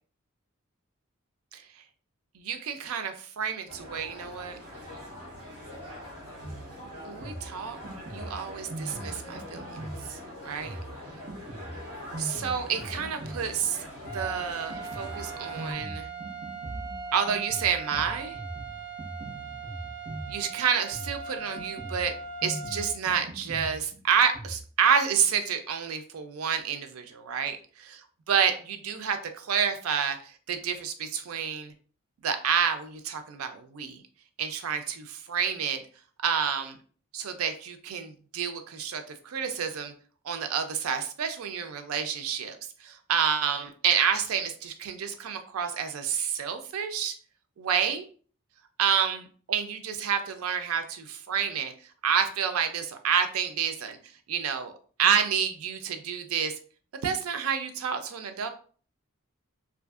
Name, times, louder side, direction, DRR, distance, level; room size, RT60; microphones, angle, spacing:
voice 1, 2.3-4.6 7.0-7.8 8.1-9.6 10.1-10.8 12.2-13.8 14.0-16.1 17.1-18.4 20.3-22.1 22.4-27.6 27.9-28.0 28.3-31.7 32.2-34.0 34.4-35.8 36.2-36.8 37.1-39.9 40.2-47.1 47.6-48.0 48.8-51.7 52.0-54.0 54.3-54.7 55.0-56.5 57.0-58.5, right 7 dB, 90° right, 8 dB, 0.4 m, -29 dB
sound 1, 3.7-15.7, left 1 dB, 25° right, 1.3 m, -43 dB
Drum kit, 6.4-24.6, right 1 dB, 70° right, 0.9 m, -41 dB
sound 2, 14.0-22.9, right 5 dB, 20° left, 1.2 m, -40 dB
2.7 x 2.4 x 2.3 m, 0.43 s
head